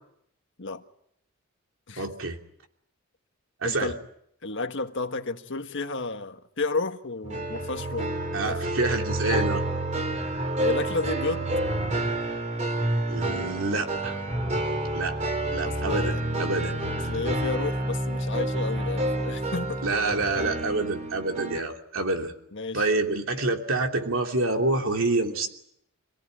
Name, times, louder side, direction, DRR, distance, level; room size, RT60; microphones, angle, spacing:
voice 1, 2.0-2.4 3.6-3.9 8.3-9.6 13.1-14.2 14.9-15.2 15.5-16.7 19.8-22.3 22.7-25.5, right 2 dB, 65° right, 3.1 m, -27 dB
voice 2, 3.6-4.0 4.4-8.1 8.4-8.6 10.6-11.5 15.6-16.2 16.6-16.7 17.1-19.8 22.5-22.9, left 3 dB, 55° left, 1.6 m, -32 dB
sound 1, 7.2-21.6, right 1 dB, 35° right, 3.4 m, -29 dB
27.5 x 18.0 x 9.9 m
head